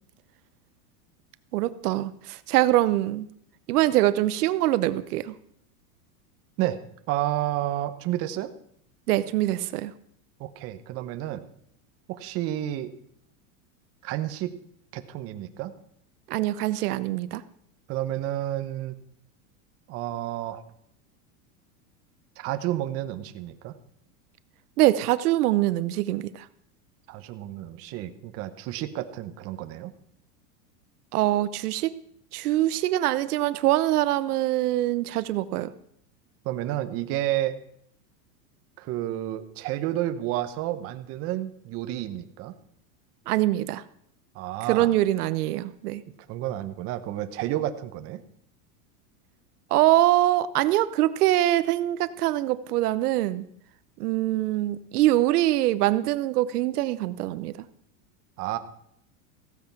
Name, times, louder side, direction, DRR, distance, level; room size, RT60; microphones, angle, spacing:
voice 1, 1.5-3.3 3.7-5.3 9.1-9.9 16.3-17.4 24.8-26.5 31.1-31.9 32.3-35.7 43.3-43.8 44.7-46.0 49.7-53.4 54.0-57.6, right 15 dB, 85° right, 15 dB, 0.9 m, -23 dB
voice 2, 7.1-8.5 10.4-11.5 12.1-12.9 14.0-14.5 14.9-15.7 17.9-18.9 19.9-20.6 22.4-23.7 27.1-29.9 36.4-37.6 38.8-42.5 44.3-44.9 46.3-48.2 58.4-58.6, right 13 dB, 30° right, 9 dB, 0.8 m, -30 dB
15.0 x 8.8 x 5.9 m, 0.69 s
supercardioid pair, 160°, 44 cm